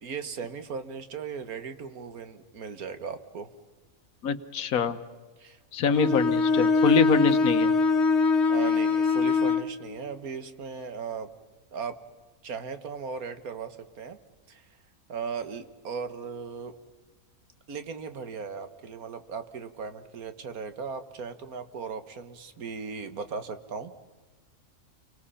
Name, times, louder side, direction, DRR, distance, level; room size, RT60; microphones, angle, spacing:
voice 1, 0.0-3.5 5.4-6.0 8.2-11.3 11.7-12.0 12.4-14.2 14.5-14.6 15.1-16.7 17.7-23.9, right 5 dB, 85° right, 10 dB, 1.8 m, -37 dB
voice 2, 4.2-5.0 5.7-7.7, left 6 dB, 80° left, 7 dB, 1.4 m, -25 dB
Bowed string instrument, 5.9-9.7, left 4 dB, 50° left, 2.0 m, -23 dB
29.0 x 24.0 x 5.7 m, 1.3 s
omnidirectional pair, 1.5 m